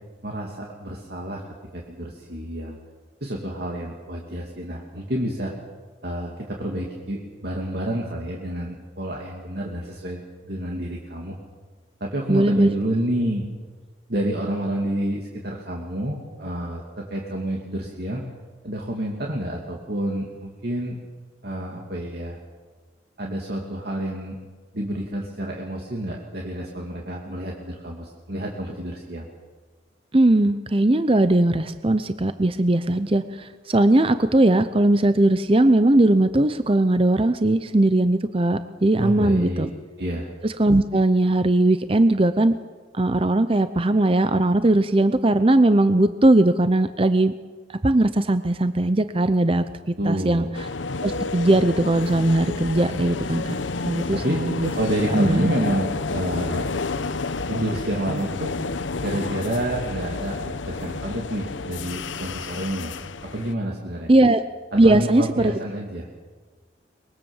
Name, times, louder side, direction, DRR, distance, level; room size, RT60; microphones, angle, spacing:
voice 1, 0.2-1.4 1.7-2.8 3.2-5.5 6.0-11.3 12.0-13.4 14.1-18.2 18.6-21.0 21.4-22.4 23.2-24.4 24.7-29.3 39.0-39.7 40.0-40.3 50.0-50.5 54.1-54.4 54.8-56.7 57.5-58.5 59.0-62.9 63.3-64.1 64.8-66.1, right 1 dB, 55° right, -1 dB, 2.7 m, -29 dB
voice 2, 12.3-12.7 30.1-39.7 40.4-42.5 43.0-47.3 47.8-50.5 51.0-53.6 53.8-54.7 55.1-55.5 64.1-64.4 64.7-65.5, right 1 dB, 30° right, 11 dB, 0.7 m, -19 dB
sound 1, 50.5-63.5, left 3 dB, 85° left, 0.9 m, -30 dB
24.0 x 22.5 x 7.3 m, 1.4 s
head